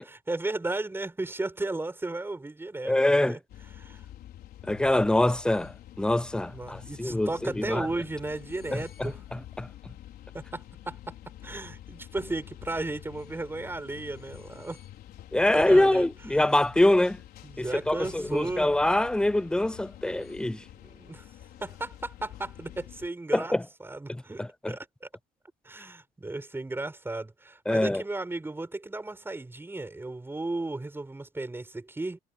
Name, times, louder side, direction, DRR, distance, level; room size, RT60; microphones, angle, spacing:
voice 1, 0.0-3.4 3.8-4.1 6.5-9.2 10.3-11.2 11.4-14.8 15.5-16.1 16.3-16.4 17.4-18.7 20.7-21.3 21.6-23.5 23.8-25.1 25.6-32.2, right 2 dB, 15° right, 5.8 m, -35 dB
voice 2, 2.8-3.4 4.7-7.9 9.0-9.7 15.3-17.2 17.9-20.6 23.3-23.6 24.1-24.2 24.6-24.7 27.7-28.0, left 1 dB, 5° left, 0.4 m, -24 dB
sound 1, 3.5-23.1, left 12 dB, 70° left, 5.2 m, -47 dB
cardioid pair, 110°, 17 cm